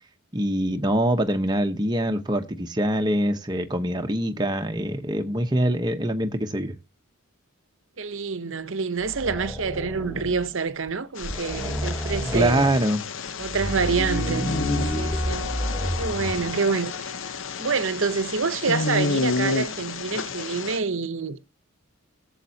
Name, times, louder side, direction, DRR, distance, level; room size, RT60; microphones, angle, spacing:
voice 1, 0.3-6.8 12.3-13.0, right 1 dB, 20° right, 0.9 m, -24 dB
voice 2, 8.0-12.7 13.4-14.5 14.9-15.5 16.0-17.1 17.6-21.4, right 5 dB, 60° right, 0.8 m, -27 dB
sound 1, 9.0-10.5 10.9-11.0 11.2-12.8 13.4-16.5, equal, 5° left, 3.6 m, -30 dB
sound 2, 11.2-20.8, left 4 dB, 60° left, 0.8 m, -31 dB
Wind instrument woodwind instrument, 13.7-18.0, left 7 dB, 80° left, 2.0 m, -39 dB
17.0 x 7.4 x 2.8 m
head